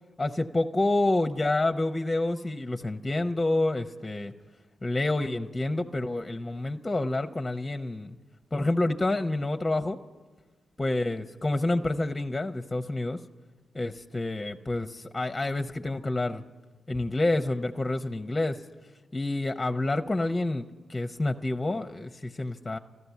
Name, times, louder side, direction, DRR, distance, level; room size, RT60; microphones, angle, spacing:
voice 1, 0.2-4.3 4.8-8.2 8.5-10.0 10.8-13.2 13.7-16.4 16.9-18.6 19.1-20.6 20.9-22.8, left 2 dB, 25° left, 8 dB, 0.7 m, -28 dB
14.5 x 12.5 x 8.2 m, 1.3 s
hypercardioid pair, 45°, 0 cm